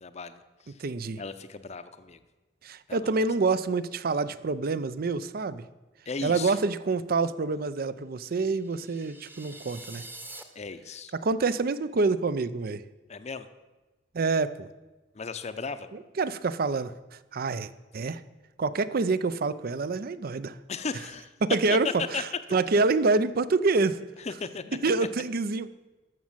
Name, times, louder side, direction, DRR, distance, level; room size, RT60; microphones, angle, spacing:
voice 1, 0.0-0.8 1.2-2.2 2.9-3.3 6.1-6.6 10.5-11.1 13.1-13.5 15.1-15.9 20.7-21.3 21.7-21.8 22.1-22.2 24.2-24.9, left 4 dB, 40° left, 11 dB, 0.6 m, -36 dB
voice 2, 0.8-1.2 2.6-5.6 6.2-10.0 11.1-12.8 14.1-14.7 16.2-16.9 17.3-18.2 18.6-20.6 21.4-21.9 22.2-22.3 22.5-24.0 24.8-25.7, right 3 dB, 55° right, 16 dB, 0.5 m, -27 dB
sound 1, 8.5-10.4, right 2 dB, 10° right, 0.9 m, -45 dB
13.5 x 6.3 x 7.3 m, 1.2 s
head